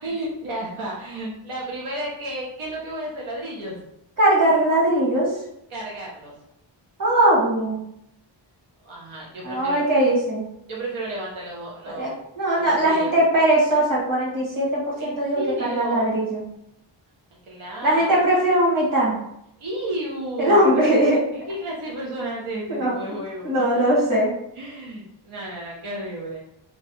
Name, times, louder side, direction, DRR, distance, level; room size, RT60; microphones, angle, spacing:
voice 1, 0.0-3.8 5.7-6.3 8.8-10.1 10.7-12.2 12.5-13.1 15.0-16.1 17.5-18.2 19.6-20.8 21.3-23.7 24.6-26.4, right 1 dB, 85° right, -4 dB, 0.9 m, -32 dB
voice 2, 4.2-5.3 7.0-7.8 9.4-10.4 11.9-16.5 17.8-19.2 20.4-21.2 22.7-22.9 23.4-24.3, right 1 dB, 45° right, -5 dB, 1.5 m, -20 dB
3.1 x 2.3 x 4.0 m, 0.80 s
wide cardioid pair, 115°, 47 cm